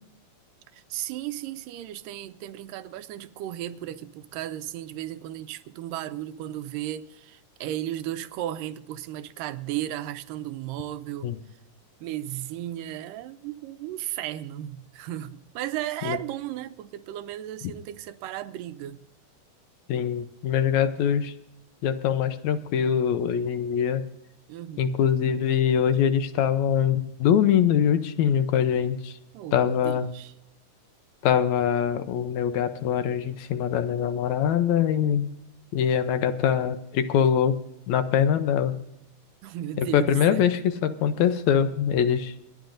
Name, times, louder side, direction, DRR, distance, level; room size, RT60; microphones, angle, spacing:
voice 1, 0.7-11.3 12.0-19.0 24.5-25.0 29.3-30.3 39.4-40.5, right 13 dB, 85° right, 2.3 m, -35 dB
voice 2, 19.9-21.3 21.8-24.0 24.8-29.2 29.5-30.1 31.2-35.3 35.7-37.5 37.9-38.7 39.8-42.4, left 8 dB, 75° left, 1.8 m, -23 dB
27.0 x 10.0 x 2.6 m
omnidirectional pair, 3.8 m